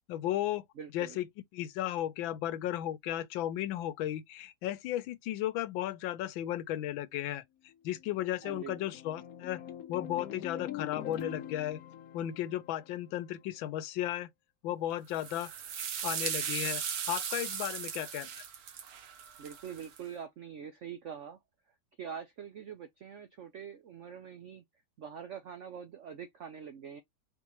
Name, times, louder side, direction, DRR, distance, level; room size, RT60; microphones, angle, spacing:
voice 1, 0.1-0.6 0.9-1.3 1.5-7.4 7.8-9.6 9.9-11.8 12.1-14.3 14.6-15.5 16.0-16.8 17.1-18.4, left 13 dB, 85° left, 1.4 m, -34 dB
voice 2, 0.8-1.2 8.4-8.8 19.4-21.4 22.0-24.6 25.0-27.0, right 7 dB, 75° right, 0.6 m, -44 dB
sound 1, 7.7-13.3, left 11 dB, 65° left, 1.0 m, -44 dB
sound 2, 15.1-20.0, right 8 dB, 60° right, 1.2 m, -37 dB
4.1 x 3.5 x 3.0 m
omnidirectional pair, 2.1 m